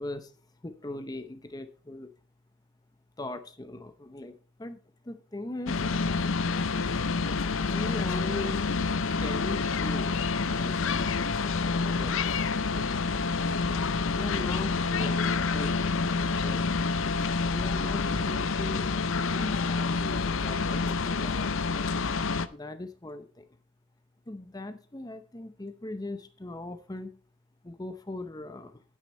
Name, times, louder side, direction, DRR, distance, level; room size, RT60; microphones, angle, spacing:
voice 1, 0.0-2.1 3.2-5.8 7.7-8.8 9.2-11.4 12.0-13.3 14.1-16.8 17.4-18.8 19.3-21.5 22.5-23.5 24.3-27.2 27.6-28.8, left 2 dB, 20° left, 9 dB, 0.6 m, -40 dB
sound 1, 5.7-22.5, left 4 dB, 70° left, 0.6 m, -28 dB
9.2 x 9.0 x 4.2 m, 0.37 s
head